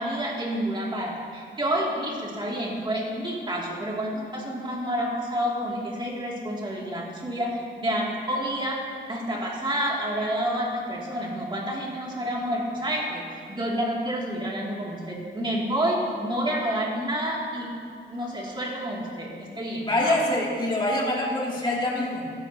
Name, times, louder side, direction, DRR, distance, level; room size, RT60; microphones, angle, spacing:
voice 1, 0.0-8.8 9.1-17.7 18.1-20.2, equal, 25° right, -3 dB, 2.6 m, -29 dB
voice 2, 19.8-22.3, left 1 dB, 25° left, -4 dB, 2.7 m, -25 dB
16.5 x 12.0 x 2.9 m, 2.5 s
wide cardioid pair, 110°, 20 cm